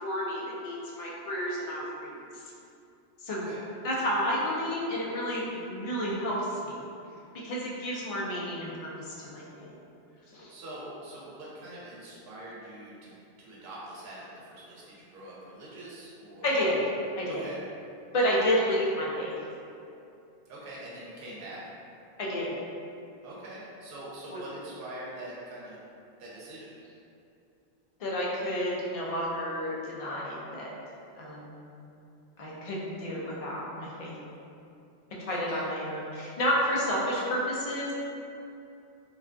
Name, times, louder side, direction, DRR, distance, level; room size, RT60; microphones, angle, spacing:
voice 1, 0.0-2.2 3.2-3.4 3.8-6.8 7.4-8.7 9.1-9.7 10.3-10.5 16.4-16.8 17.2-17.4 18.1-19.3 22.2-22.5 24.3-24.4 28.0-30.7 31.1-31.6 32.4-34.1 35.2-37.9, equal, 60° left, -5 dB, 0.3 m, -30 dB
voice 2, 3.3-3.6 10.5-13.1 13.4-16.6 17.3-17.6 20.5-21.6 23.2-25.8 26.2-26.8 35.3-35.7, right 1 dB, 60° right, -7 dB, 0.8 m, -44 dB
2.4 x 2.2 x 2.4 m, 2.6 s
omnidirectional pair, 1.1 m